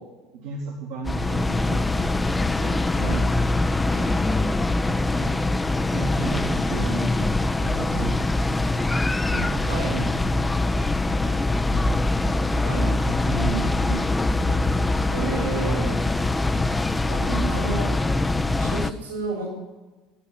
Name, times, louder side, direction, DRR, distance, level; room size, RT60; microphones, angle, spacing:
voice 1, 0.3-2.1 2.5-3.1 3.9-4.5 5.1-5.6 5.9-9.0 9.3-11.8 12.8-14.7 15.2-15.5 17.3-17.8 18.6-18.7, right 3 dB, 65° right, -1 dB, 2.3 m, -35 dB
sound 1, 1.0-18.9, left 2 dB, 15° left, 0.8 m, -23 dB
voice 2, 15.1-15.9 17.1-17.2 17.5-17.9 18.6-19.5, right 4 dB, 85° right, -2 dB, 6.8 m, -30 dB
15.0 x 9.8 x 9.5 m, 1.2 s
figure-of-eight pair, 60°, 0 cm